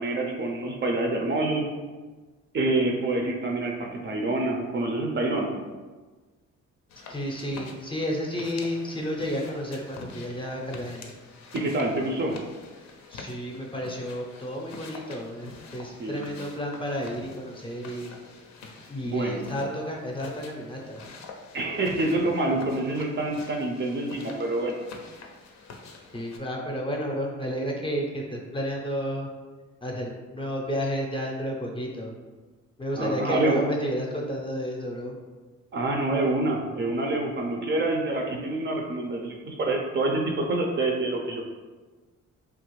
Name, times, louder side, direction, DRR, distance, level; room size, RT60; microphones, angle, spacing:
voice 1, 0.0-1.7 2.5-5.6 11.5-12.4 16.0-16.3 19.0-19.5 21.5-24.7 33.0-33.6 35.7-41.4, right 2 dB, 40° right, 1 dB, 0.4 m, -27 dB
sound 1, 6.9-26.4, left 3 dB, 65° left, 0.5 m, -46 dB
voice 2, 7.0-11.1 13.1-18.2 18.9-21.0 26.1-29.3 29.8-32.1 32.8-35.2, equal, 15° left, -1 dB, 0.5 m, -31 dB
3.0 x 2.4 x 3.0 m, 1.3 s
cardioid pair, 90°, 30 cm